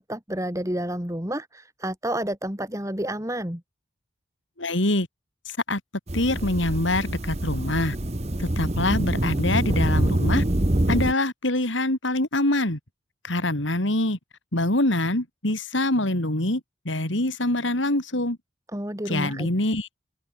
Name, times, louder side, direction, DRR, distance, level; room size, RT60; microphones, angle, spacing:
voice 1, 0.0-3.6 18.7-19.5, right 1 dB, 15° right, 2.9 m, -30 dB
voice 2, 4.6-5.1 5.5-5.8 6.1-8.0 8.4-10.4 10.9-12.8 13.2-14.2 14.5-18.4 19.1-19.9, left 1 dB, 85° left, 4.3 m, -25 dB
sound 1, 6.1-11.1, right 1 dB, 35° right, 1.2 m, -25 dB
open air
head